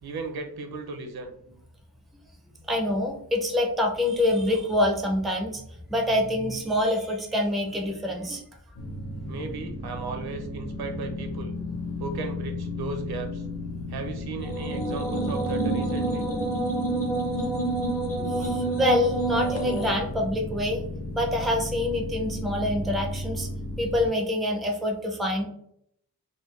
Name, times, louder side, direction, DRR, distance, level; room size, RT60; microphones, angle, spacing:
voice 1, 0.0-1.3 9.3-11.5 12.0-13.4 13.9-16.3, right 3 dB, 80° right, 6 dB, 0.7 m, -35 dB
voice 2, 2.7-5.6 5.9-8.4 18.1-20.8 21.1-23.5 23.8-25.4, left 1 dB, ahead, 2 dB, 0.4 m, -26 dB
sound 1, 8.8-24.1, left 2 dB, 80° left, 1.1 m, -34 dB
sound 2, 14.4-19.9, right 2 dB, 40° left, 0.7 m, -28 dB
3.9 x 2.2 x 3.1 m, 0.72 s
wide cardioid pair, 170°, 37 cm